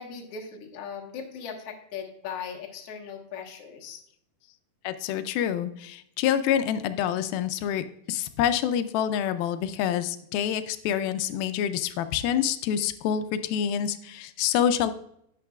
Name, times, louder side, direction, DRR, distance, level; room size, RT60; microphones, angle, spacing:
voice 1, 0.0-4.0, left 6 dB, 60° left, 1 dB, 1.6 m, -38 dB
voice 2, 4.8-14.9, left 9 dB, 80° left, 11 dB, 2.2 m, -27 dB
10.5 x 8.7 x 2.3 m, 0.74 s
omnidirectional pair, 4.6 m